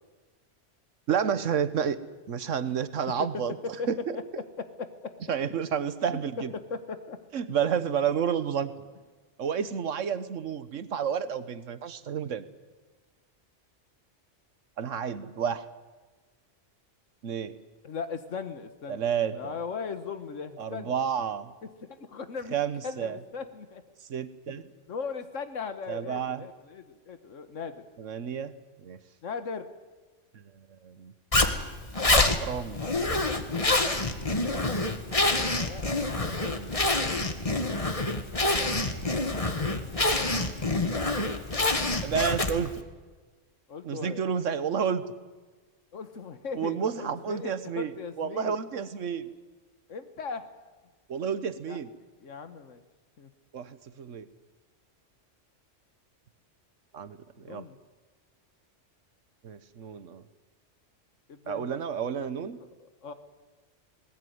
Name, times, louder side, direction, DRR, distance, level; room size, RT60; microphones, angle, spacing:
voice 1, 1.1-2.0 2.3-3.6 3.9-4.2 5.3-6.5 7.3-8.7 9.4-12.5 14.8-15.7 17.2-17.6 18.9-19.6 20.6-21.5 22.5-23.2 24.1-24.7 25.9-26.4 28.0-29.0 30.3-30.4 30.8-31.1 32.4-32.9 36.5-36.7 41.9-42.8 43.8-45.0 46.6-47.9 48.2-49.3 51.1-51.9 53.5-54.3 56.9-57.7 59.4-60.2 61.5-62.6, right 7 dB, 80° right, 14 dB, 1.4 m, -30 dB
voice 2, 4.6-5.1 6.1-6.2 6.5-7.2 17.8-20.9 21.9-22.6 22.8-23.8 24.9-27.8 29.2-29.7 35.3-35.8 43.7-44.3 45.9-48.6 49.9-50.5 51.6-51.8 52.2-52.8 53.2-53.3 57.4-57.8 61.3-61.7 63.0-63.1, left 5 dB, 80° left, 9 dB, 1.6 m, -38 dB
Zipper (clothing), 31.3-42.8, left 2 dB, 30° left, 1.7 m, -26 dB
20.0 x 19.5 x 9.5 m, 1.3 s
omnidirectional pair, 1.3 m